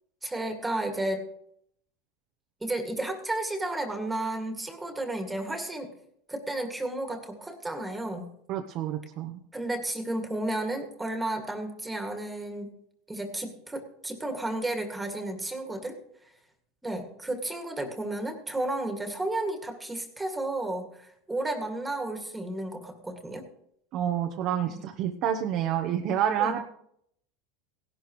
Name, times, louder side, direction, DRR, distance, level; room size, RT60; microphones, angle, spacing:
voice 1, 0.2-1.2 2.6-5.9 6.3-8.3 9.5-12.7 13.1-16.0 16.8-23.5 26.4-26.6, right 1 dB, 10° right, 5 dB, 2.1 m, -32 dB
voice 2, 8.5-9.4 23.9-26.6, right 9 dB, 50° right, 4 dB, 1.0 m, -28 dB
17.0 x 12.0 x 3.1 m, 0.70 s
supercardioid pair, 115°, 0 cm